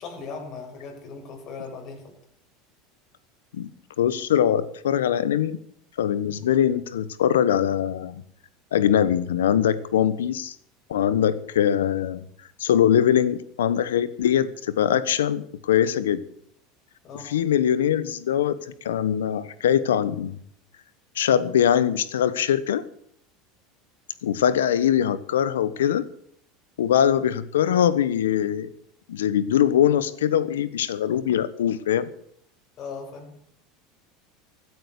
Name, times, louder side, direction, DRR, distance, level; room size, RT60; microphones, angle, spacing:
voice 1, 0.0-2.1 17.0-17.4 32.8-33.4, left 5 dB, 50° left, 2 dB, 6.5 m, -38 dB
voice 2, 4.0-5.6 6.0-8.2 8.7-10.5 10.9-12.2 12.6-16.2 17.2-18.6 18.8-20.4 21.1-22.8 24.2-26.0 26.8-28.7 29.1-32.1, left 9 dB, 90° left, 16 dB, 1.2 m, -22 dB
16.0 x 9.5 x 8.2 m, 0.65 s
hypercardioid pair, 95°, 0 cm